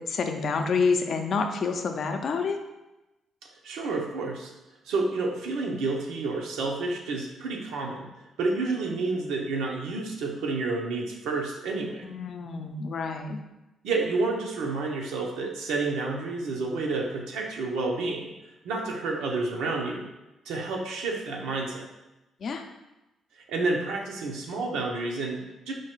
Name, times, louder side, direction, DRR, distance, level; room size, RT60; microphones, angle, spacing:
voice 1, 0.0-2.6 12.0-13.4 22.4-22.6, left 4 dB, 55° left, 5 dB, 0.5 m, -28 dB
voice 2, 3.6-4.5 4.9-8.1 8.4-12.0 13.8-18.3 18.6-20.1 20.5-21.9 23.5-25.7, right 3 dB, 90° right, 0 dB, 0.7 m, -29 dB
4.6 x 2.4 x 4.5 m, 0.99 s
cardioid pair, 90°, 0 cm